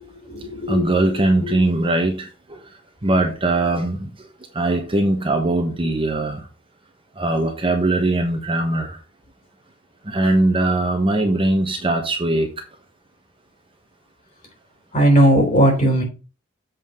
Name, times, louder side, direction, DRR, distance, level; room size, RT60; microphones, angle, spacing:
voice 1, 0.1-1.1 1.4-1.5 14.9-16.0, right 1 dB, 35° left, 1 dB, 3.7 m, -18 dB
voice 2, 0.7-2.6 3.0-4.1 4.5-6.5 7.2-9.0 10.1-12.5, right 2 dB, 25° right, 3 dB, 1.2 m, -20 dB
7.6 x 4.3 x 5.4 m, 0.34 s
head